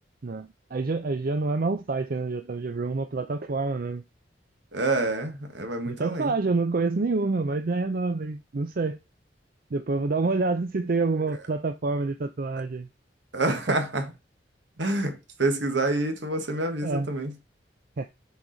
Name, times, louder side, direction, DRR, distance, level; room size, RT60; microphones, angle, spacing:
voice 1, 0.2-4.0 5.8-9.0 9.7-12.9 13.5-13.8 16.8-17.1 18.0-18.1, right 3 dB, 50° right, 0.5 m, -27 dB
voice 2, 4.7-6.3 13.3-14.1 14.8-17.3, right 2 dB, 75° right, 1.5 m, -27 dB
7.1 x 4.7 x 3.9 m
head